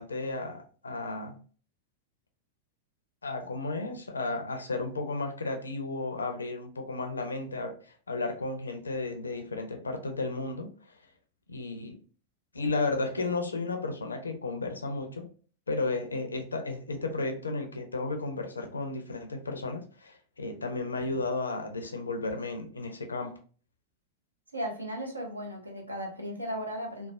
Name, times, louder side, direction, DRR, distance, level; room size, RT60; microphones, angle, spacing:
voice 1, 0.0-1.4 3.2-10.7 11.5-12.0 12.5-15.3 15.7-23.4, left 3 dB, 75° left, 0.4 m, -33 dB
voice 2, 24.5-27.1, equal, 80° right, 0.6 m, -36 dB
3.1 x 2.0 x 2.3 m
figure-of-eight pair, 90°, 0 cm